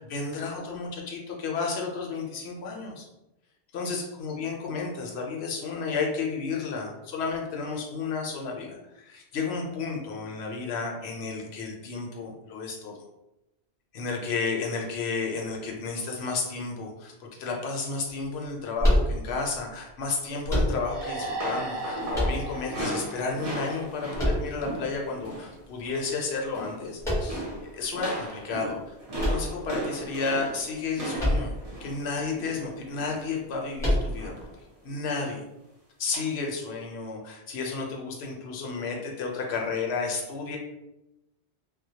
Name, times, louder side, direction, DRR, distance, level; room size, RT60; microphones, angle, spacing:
voice 1, 0.0-3.1 3.7-13.0 13.9-31.5 31.8-34.3 34.8-35.4 36.0-40.6, left 4 dB, 75° left, 0 dB, 0.8 m, -32 dB
sound 1, 18.8-19.6 20.5-21.2 22.1-22.8 24.2-25.0 27.0-27.6 29.2-30.1 31.2-31.7 32.0-32.1 33.8-34.4, left 1 dB, 5° left, 0.8 m, -26 dB
sound 2, 20.8-24.3, right 1 dB, 70° right, 1.0 m, -37 dB
sound 3, 21.0-25.5 25.8-26.1 26.4-26.9 27.3-33.3 34.2-34.5 34.9-35.1 36.1-36.2, right 1 dB, 40° right, 0.6 m, -36 dB
2.1 x 2.1 x 2.7 m, 0.92 s
omnidirectional pair, 1.1 m